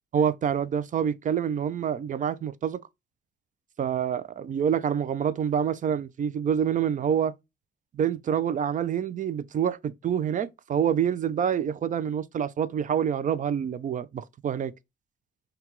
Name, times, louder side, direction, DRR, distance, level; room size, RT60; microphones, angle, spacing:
voice 1, 0.1-2.8 3.8-7.3 7.9-14.7, right 8 dB, 40° right, 0.4 m, -27 dB
5.6 x 2.3 x 2.9 m
cardioid pair, 90°, 20 cm